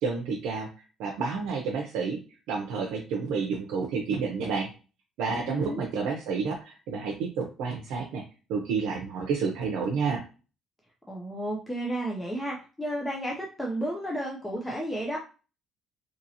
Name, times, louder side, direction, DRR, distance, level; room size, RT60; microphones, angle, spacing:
voice 1, 0.0-0.7 1.0-2.2 2.5-4.7 5.2-8.2 8.5-10.2, right 5 dB, 85° right, 0 dB, 0.6 m, -30 dB
voice 2, 5.5-5.8 11.1-15.2, right 1 dB, 5° left, -1 dB, 0.4 m, -32 dB
2.8 x 2.7 x 2.7 m, 0.34 s
cardioid pair, 145°, 0 cm